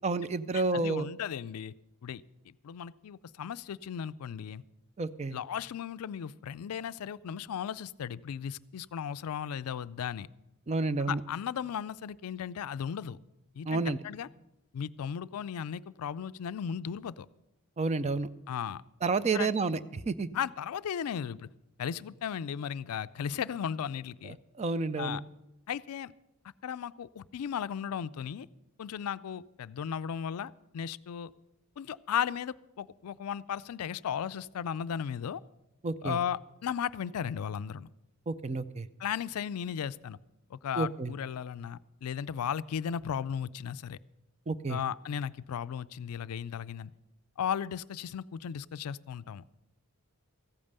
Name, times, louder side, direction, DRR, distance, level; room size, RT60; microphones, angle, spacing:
voice 1, 0.0-1.1 5.0-5.4 10.7-11.2 13.7-14.0 17.8-18.3 19.0-20.3 24.2-25.2 35.8-36.2 38.3-38.9 40.8-41.1 44.5-44.8, right 3 dB, 30° right, 15 dB, 0.4 m, -30 dB
voice 2, 0.5-1.7 2.0-4.6 5.3-10.3 11.0-13.2 13.6-14.3 14.7-17.3 18.5-18.8 19.3-19.5 20.3-21.5 21.8-24.4 25.0-25.2 25.7-26.1 26.6-28.5 28.8-31.3 31.8-35.4 36.0-37.9 39.0-40.2 40.5-44.0 44.7-46.9 47.4-49.4, left 8 dB, 75° left, 17 dB, 0.4 m, -36 dB
14.5 x 8.8 x 6.6 m, 0.94 s
head